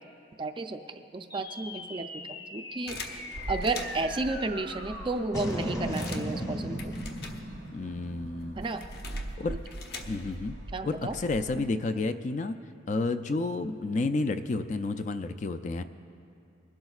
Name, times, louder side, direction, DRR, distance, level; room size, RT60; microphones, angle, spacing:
voice 1, 0.4-2.2 2.5-3.2 3.5-6.9 8.6-8.8 10.7-11.1, right 3 dB, 25° right, 7 dB, 0.4 m, -32 dB
sound 1, 1.3-9.9, equal, 15° left, 0.8 m, -38 dB
sound 2, 2.9-4.2 4.8-4.9 5.2-7.8 8.1-10.5, left 3 dB, 55° left, 0.9 m, -44 dB
sound 3, 3.3-11.7, right 1 dB, 60° right, 0.7 m, -43 dB
voice 2, 7.7-8.6 9.4-9.6 10.1-10.6 10.8-12.6 12.9-15.8, left 3 dB, 40° left, 9 dB, 0.3 m, -30 dB
22.0 x 12.0 x 2.4 m, 2.7 s
head